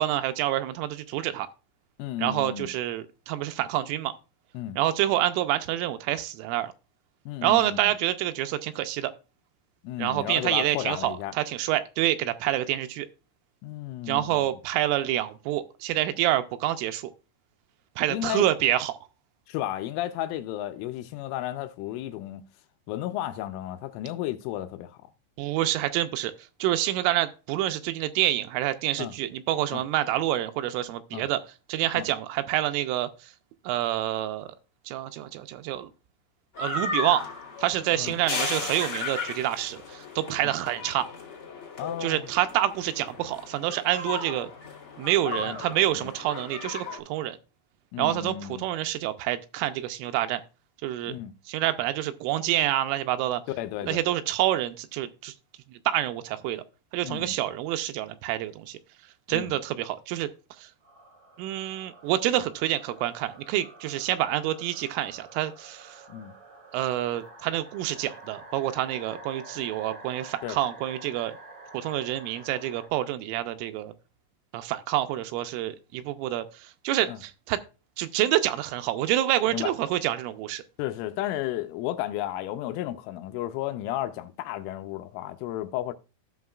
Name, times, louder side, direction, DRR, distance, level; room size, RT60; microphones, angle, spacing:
voice 1, 0.0-1.5 2.2-4.1 4.8-6.7 7.4-9.1 10.0-13.1 14.1-17.1 18.0-19.0 25.4-26.3 26.6-31.4 31.7-33.3 33.7-34.6 34.9-35.9 36.6-37.2 37.6-41.1 42.0-44.5 45.0-47.4 48.0-50.4 50.8-51.2 51.5-53.4 53.9-55.3 55.9-56.6 56.9-58.8 59.3-60.3 60.6-60.7 61.4-66.0 66.7-71.4 71.7-73.9 74.5-77.6 78.0-80.6, right 13 dB, 85° right, 3.0 m, -27 dB
voice 2, 2.0-2.7 4.5-4.8 7.3-7.8 9.8-11.4 13.6-14.5 18.1-18.5 19.5-22.4 22.9-25.0 29.0-29.1 29.7-29.8 31.1-31.3 31.9-32.1 38.0-38.1 40.4-40.5 41.8-42.3 45.4-45.6 46.0-46.1 47.9-48.6 51.1-51.3 53.6-54.0 57.0-57.3 59.3-59.5 66.1-66.3 70.4-70.6 77.1-77.2 79.5-79.7 80.8-85.9, left 13 dB, 85° left, 2.9 m, -33 dB
sound 1, 36.5-47.0, left 4 dB, 45° left, 1.6 m, -35 dB
sound 2, 60.8-72.9, right 2 dB, 45° right, 1.4 m, -48 dB
16.0 x 5.6 x 2.3 m
omnidirectional pair, 5.9 m